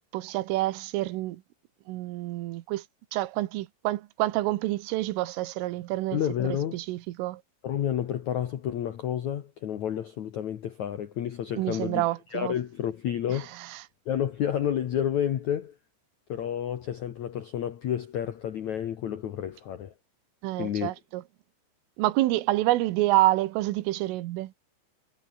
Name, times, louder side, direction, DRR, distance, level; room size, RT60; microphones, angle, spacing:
voice 1, 0.1-1.4 1.9-2.8 3.1-6.2 6.7-7.4 11.6-12.6 20.4-21.2 22.0-24.5, right 17 dB, 90° right, 3.7 m, -27 dB
voice 2, 6.1-6.8 7.6-12.0 12.3-13.5 14.0-15.7 16.3-19.9 20.6-20.9, left 10 dB, 85° left, 1.6 m, -30 dB
omnidirectional pair, 5.6 m